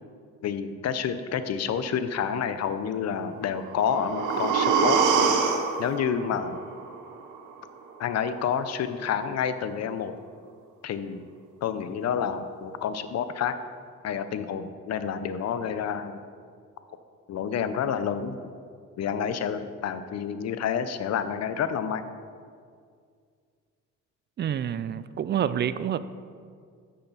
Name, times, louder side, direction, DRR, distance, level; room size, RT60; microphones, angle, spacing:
voice 1, 0.4-5.0 5.8-6.6 8.0-10.1 10.8-11.3 11.6-13.5 14.0-16.2 17.3-18.5 19.0-22.0, left 7 dB, 60° left, 11 dB, 0.6 m, -29 dB
sound 1, 3.5-7.5 7.9-8.0, right 5 dB, 90° right, 0.8 m, -26 dB
voice 2, 24.4-26.0, right 9 dB, 35° right, 14 dB, 0.4 m, -28 dB
9.9 x 6.6 x 4.0 m, 2.2 s
cardioid pair, 90°, 30 cm